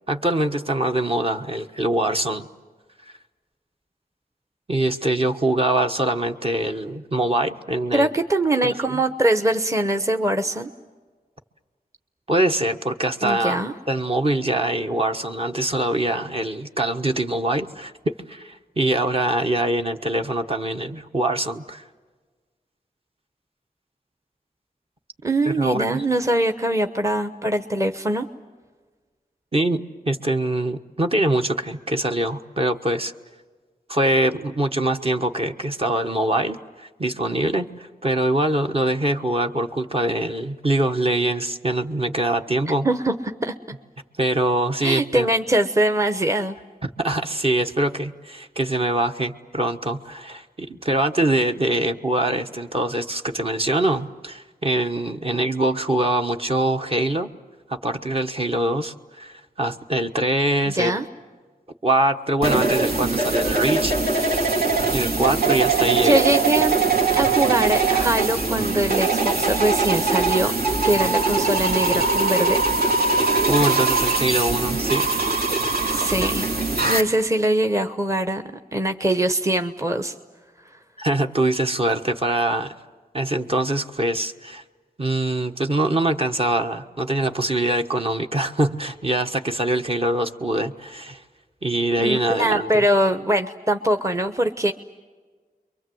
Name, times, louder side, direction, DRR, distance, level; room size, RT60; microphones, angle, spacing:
voice 1, 0.1-2.5 4.7-8.1 8.6-9.0 12.3-13.6 13.9-21.8 25.4-26.0 29.5-33.1 33.9-42.9 44.2-45.3 46.8-57.3 57.8-60.9 61.8-64.6 64.8-66.2 73.5-75.1 81.0-82.7 83.1-84.6 85.0-91.2 91.6-92.8, right 1 dB, 40° right, 5 dB, 1.2 m, -23 dB
voice 2, 7.9-10.7 13.2-13.7 25.2-28.3 42.8-43.2 43.4-43.5 44.8-46.5 60.6-61.1 66.0-66.8 67.1-70.5 70.8-72.6 75.8-76.5 76.8-80.1 92.0-94.7, right 1 dB, 20° right, 7 dB, 1.0 m, -22 dB
sound 1, 62.4-77.0, right 4 dB, 75° right, 3.2 m, -21 dB
30.0 x 23.5 x 7.8 m, 1.4 s
wide cardioid pair, 90°, 16 cm